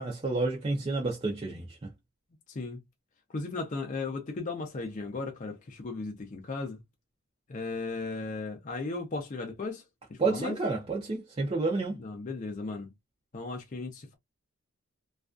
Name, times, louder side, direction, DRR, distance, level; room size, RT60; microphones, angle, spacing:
voice 1, 0.0-1.9 10.2-12.0, right 3 dB, 25° right, 0.4 m, -30 dB
voice 2, 2.5-2.8 3.3-6.8 7.5-9.8 10.1-10.5 12.0-12.9 13.3-14.2, left 3 dB, 35° left, 0.5 m, -36 dB
2.4 x 2.2 x 2.3 m
head